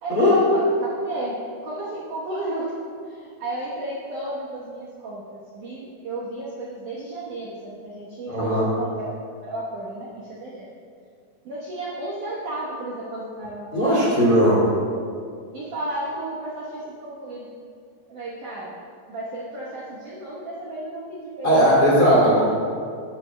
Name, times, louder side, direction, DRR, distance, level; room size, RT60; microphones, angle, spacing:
voice 1, 0.0-2.7 3.1-10.7 11.4-14.1 15.5-17.5 18.1-18.8 19.1-22.0, right 1 dB, 90° right, -7 dB, 1.7 m, -33 dB
voice 2, 8.3-8.7 13.7-14.6 21.4-22.4, equal, 30° left, -8 dB, 2.0 m, -17 dB
15.0 x 9.7 x 2.2 m, 2.3 s
omnidirectional pair, 5.5 m